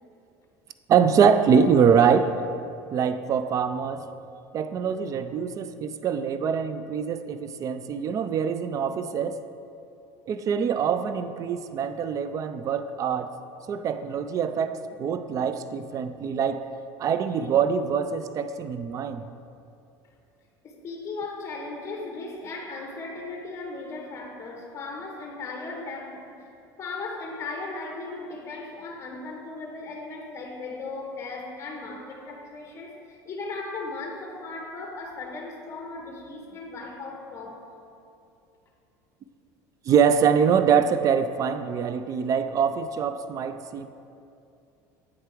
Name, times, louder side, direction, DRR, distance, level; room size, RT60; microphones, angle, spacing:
voice 1, 0.9-2.4 2.9-4.1 4.5-9.4 10.3-13.3 13.7-16.7 17.0-19.3 39.9-43.9, right 7 dB, 40° right, 11 dB, 0.4 m, -24 dB
voice 2, 20.6-26.5 26.8-37.6, left 3 dB, 30° left, 1 dB, 0.8 m, -37 dB
8.4 x 3.4 x 4.4 m, 2.6 s
supercardioid pair, 100°, 9 cm